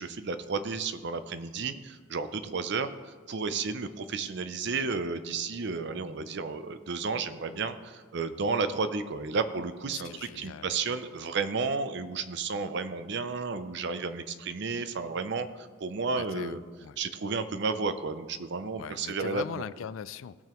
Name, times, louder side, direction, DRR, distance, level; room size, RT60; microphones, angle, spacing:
voice 1, 0.0-2.9 3.3-16.6 17.0-19.6, right 4 dB, 60° right, 11 dB, 0.6 m, -32 dB
voice 2, 9.9-10.7 16.1-17.0 18.8-20.4, left 7 dB, 80° left, 17 dB, 0.4 m, -40 dB
17.0 x 6.8 x 3.1 m, 1.5 s
head